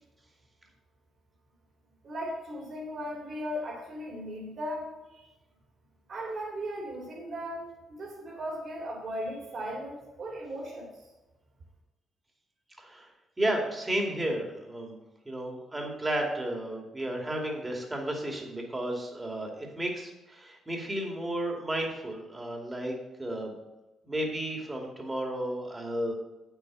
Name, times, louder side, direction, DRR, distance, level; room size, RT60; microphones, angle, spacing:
voice 1, 2.0-5.3 6.1-10.9, equal, 50° right, -2 dB, 3.4 m, -37 dB
voice 2, 13.4-15.0 15.3-23.6 24.0-26.1, right 1 dB, 20° right, 0 dB, 2.4 m, -33 dB
8.5 x 8.1 x 4.1 m, 1.0 s
cardioid pair, 90°, 0 cm